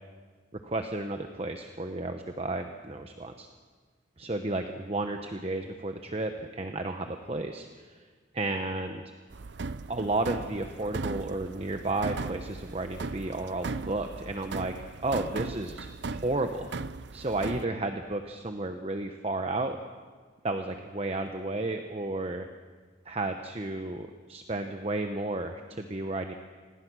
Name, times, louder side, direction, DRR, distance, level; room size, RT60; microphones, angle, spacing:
voice 1, 0.6-3.5 4.2-8.0 8.3-9.0 9.9-14.7 15.0-16.7 17.1-19.8 20.4-22.5 23.1-26.3, right 2 dB, 30° right, 6 dB, 0.9 m, -32 dB
sound 1, 9.3-17.7, right 3 dB, 60° right, 0.6 m, -38 dB
26.5 x 19.0 x 6.2 m, 1.5 s
head